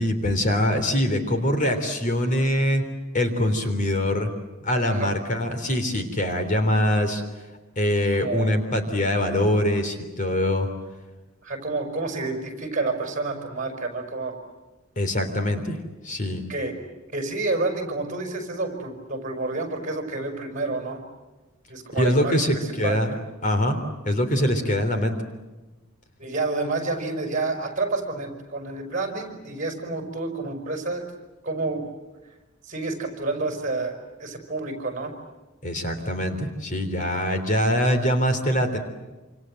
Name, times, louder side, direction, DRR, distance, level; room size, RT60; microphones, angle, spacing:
voice 1, 0.0-2.8 3.1-4.3 4.6-7.2 7.8-10.7 15.0-15.8 16.0-16.4 21.9-23.1 23.4-23.8 24.1-25.2 35.6-38.8, left 1 dB, 40° left, 7 dB, 3.5 m, -23 dB
voice 2, 4.9-5.4 8.1-8.5 11.4-14.4 16.5-16.7 17.1-21.0 21.7-23.2 26.2-31.0 31.4-31.9 32.6-35.1, right 3 dB, 40° right, 5 dB, 5.5 m, -29 dB
27.5 x 27.5 x 7.8 m, 1.2 s
head